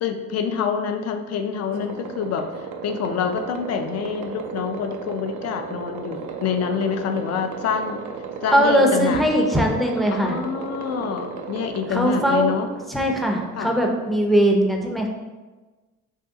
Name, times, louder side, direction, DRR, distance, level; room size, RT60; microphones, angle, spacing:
voice 1, 0.0-8.0 8.4-9.2 10.1-12.7 13.6-13.7, left 7 dB, 60° left, 6 dB, 0.4 m, -27 dB
sound 1, 1.7-14.3, right 6 dB, 80° right, 0.5 m, -35 dB
voice 2, 8.5-10.4 11.9-12.5 12.9-15.1, equal, ahead, 0 dB, 0.5 m, -20 dB
2.8 x 2.8 x 3.5 m, 1.2 s
cardioid pair, 90°, 30 cm